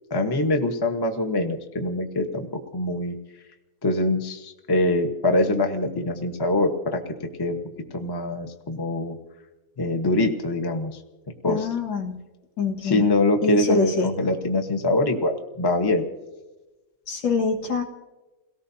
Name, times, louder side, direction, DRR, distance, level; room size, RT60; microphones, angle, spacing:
voice 1, 0.1-2.5 2.7-3.1 3.8-7.0 7.4-7.6 7.9-9.2 9.8-11.0 11.4-11.7 12.8-16.0, left 2 dB, 15° left, 5 dB, 0.8 m, -24 dB
voice 2, 11.5-12.2 12.6-13.0 13.4-14.1 17.1-17.8, left 3 dB, 80° left, 1 dB, 2.5 m, -24 dB
29.5 x 17.5 x 2.8 m, 1.1 s
omnidirectional pair, 2.0 m